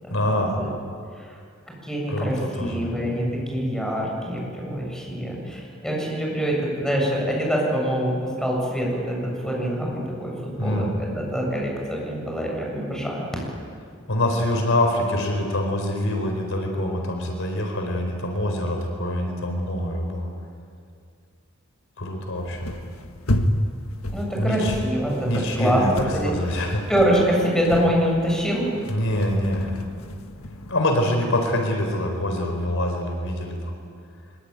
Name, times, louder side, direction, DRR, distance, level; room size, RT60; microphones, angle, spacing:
voice 1, 0.1-0.6 2.1-2.9 10.6-11.0 14.1-20.3 22.0-22.7 24.4-24.7 25.3-26.8 28.9-29.8 30.7-33.7, left 1 dB, 65° left, 3 dB, 4.5 m, -25 dB
voice 2, 1.8-8.1 8.4-9.2 9.4-13.2 24.1-26.3 26.9-28.6, equal, 5° left, -2 dB, 7.8 m, -25 dB
sound 1, 22.4-30.7, left 1 dB, 80° left, 1.6 m, -31 dB
24.5 x 23.5 x 9.9 m, 2.2 s
head